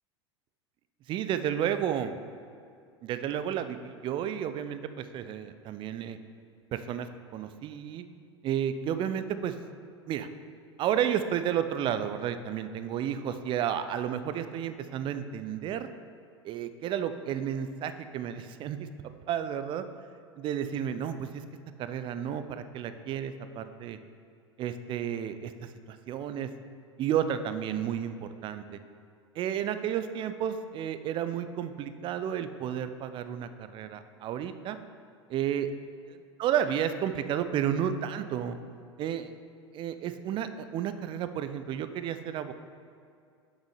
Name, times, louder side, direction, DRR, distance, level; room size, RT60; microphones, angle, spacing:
voice 1, 1.1-2.2 3.0-6.2 6.7-7.1 7.3-8.0 8.4-9.6 10.1-10.3 10.8-15.9 16.4-18.9 19.3-19.8 20.4-21.4 21.8-24.0 24.6-26.5 27.0-28.8 29.4-34.8 35.3-35.7 36.4-38.6 39.0-39.3 39.7-42.5, right 9 dB, 35° right, 10 dB, 0.5 m, -32 dB
6.2 x 6.2 x 5.5 m, 2.3 s
figure-of-eight pair, 80°, 14 cm